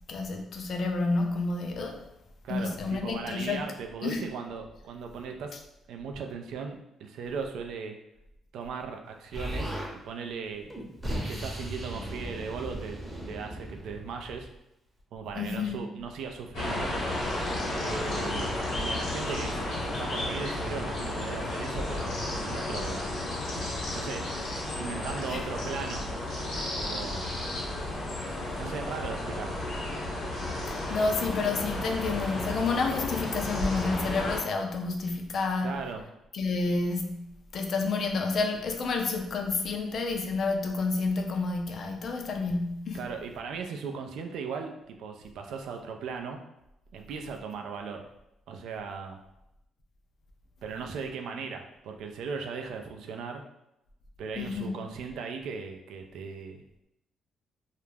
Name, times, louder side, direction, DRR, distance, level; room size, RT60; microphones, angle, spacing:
voice 1, 0.1-2.0 2.5-3.6 4.0-4.3 15.3-15.8 25.3-25.5 30.7-35.8 36.3-43.1 54.4-54.8, left 3 dB, 60° left, 4 dB, 0.4 m, -30 dB
voice 2, 2.4-5.6 5.9-8.0 8.5-9.8 10.0-10.7 11.1-13.0 13.3-14.5 15.1-16.9 17.7-19.6 20.0-23.0 23.9-24.2 24.8-26.1 26.5-27.3 28.6-29.5 35.6-36.0 42.9-46.4 46.9-48.0 48.5-49.2 50.6-53.4 54.2-56.6, right 5 dB, 80° right, 4 dB, 0.3 m, -38 dB
Explosion, 9.3-9.9 10.7-14.6, right 1 dB, 15° right, 0.7 m, -36 dB
sound 1, 16.5-34.4, left 1 dB, 75° left, 1.0 m, -33 dB
2.3 x 2.1 x 3.2 m, 0.85 s
cardioid pair, 90°, 0 cm